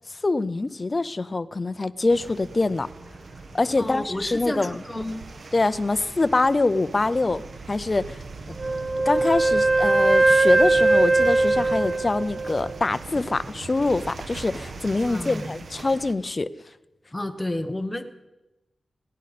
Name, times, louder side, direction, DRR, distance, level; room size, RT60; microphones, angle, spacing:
voice 1, 0.2-2.9 3.5-4.8 5.5-7.4 7.7-8.2 9.1-16.5, left 3 dB, 25° left, 14 dB, 0.5 m, -24 dB
sound 1, 2.1-16.1, right 3 dB, 50° right, 1.0 m, -40 dB
voice 2, 3.8-5.3 15.1-15.6 17.1-18.0, left 1 dB, 10° left, 6 dB, 1.1 m, -31 dB
Wind instrument woodwind instrument, 8.6-12.8, right 2 dB, 30° right, 0.5 m, -20 dB
30.0 x 10.5 x 4.2 m, 1.0 s
wide cardioid pair, 175°, 0 cm